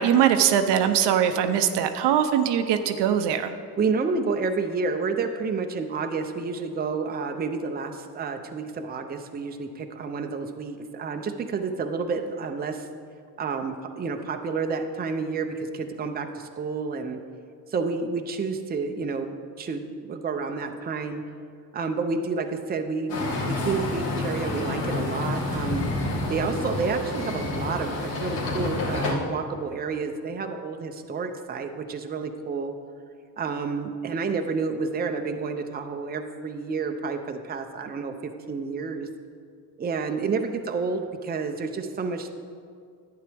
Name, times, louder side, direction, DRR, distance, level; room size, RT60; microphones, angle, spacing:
voice 1, 0.0-3.5, right 9 dB, 75° right, 8 dB, 0.7 m, -21 dB
voice 2, 3.8-12.9 13.4-17.2 17.7-21.2 21.7-25.9 26.3-32.7 33.4-39.1 39.8-42.3, right 4 dB, 20° right, 5 dB, 0.6 m, -30 dB
sound 1, 23.1-29.1, left 2 dB, 80° left, 2.2 m, -29 dB
11.0 x 8.9 x 3.4 m, 2.2 s
cardioid pair, 110°, 42 cm